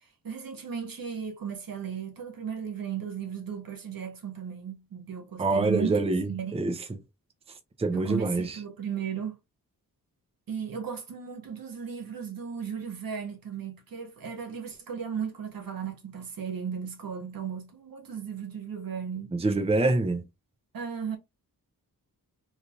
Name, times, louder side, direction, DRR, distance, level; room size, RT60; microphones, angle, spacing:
voice 1, 0.2-6.6 7.9-9.4 10.5-19.3 20.7-21.2, right 7 dB, 75° right, 1.2 m, -35 dB
voice 2, 5.4-6.8 7.8-8.6 19.3-20.2, right 2 dB, 15° right, 0.6 m, -26 dB
3.3 x 2.7 x 2.5 m
wide cardioid pair, 100°, 35 cm